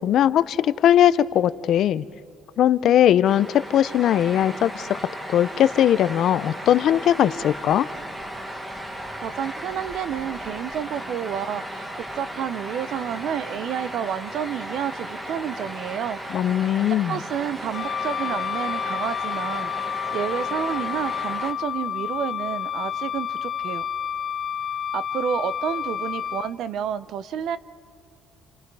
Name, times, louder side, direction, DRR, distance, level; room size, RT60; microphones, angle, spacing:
voice 1, 0.0-2.0 2.6-5.0 5.3-7.9 16.3-17.2, left 11 dB, 50° left, 15 dB, 0.5 m, -19 dB
sound 1, 3.2-21.5, equal, 10° right, 1.3 m, -35 dB
voice 2, 9.2-11.9 12.1-16.2 17.1-23.8 24.9-27.6, right 9 dB, 55° right, 15 dB, 0.7 m, -30 dB
Wind instrument woodwind instrument, 17.7-26.5, left 9 dB, 35° left, 0.9 m, -30 dB
30.0 x 27.5 x 4.8 m, 2.1 s
cardioid pair, 160°, 0 cm